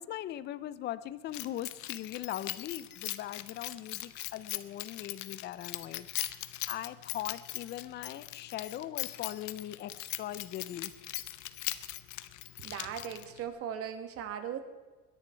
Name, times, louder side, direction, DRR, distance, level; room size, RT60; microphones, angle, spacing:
voice 1, 0.0-6.1 6.7-10.9, left 12 dB, 35° left, 16 dB, 0.5 m, -40 dB
Keys jangling, 1.3-13.5, left 17 dB, 70° left, 0.9 m, -40 dB
voice 2, 12.6-14.6, right 9 dB, 50° right, 9 dB, 1.7 m, -38 dB
21.5 x 10.5 x 4.5 m, 1.3 s
cardioid pair, 175°, 30 cm